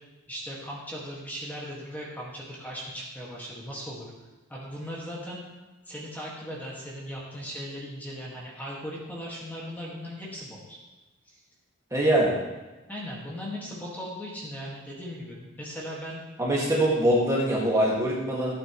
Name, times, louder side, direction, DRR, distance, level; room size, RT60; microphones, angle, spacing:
voice 1, 0.3-4.1 4.5-5.4 5.9-10.8 11.3-11.4 12.9-16.2, equal, 10° left, -5 dB, 1.9 m, -38 dB
voice 2, 11.9-12.3 16.4-18.5, right 1 dB, 15° right, -5 dB, 2.0 m, -23 dB
15.0 x 8.8 x 3.2 m, 1.1 s
head